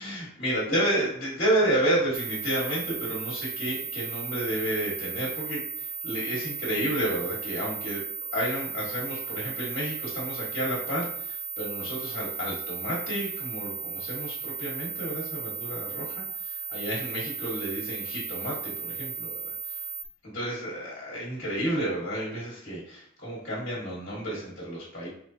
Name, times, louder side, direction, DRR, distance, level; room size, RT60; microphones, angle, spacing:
voice 1, 0.0-8.0 8.3-19.9 20.2-25.1, right 1 dB, 40° left, -6 dB, 1.4 m, -31 dB
sound 1, 2.1-20.1, right 5 dB, 40° right, 0.3 m, -36 dB
5.2 x 3.1 x 2.8 m, 0.65 s
head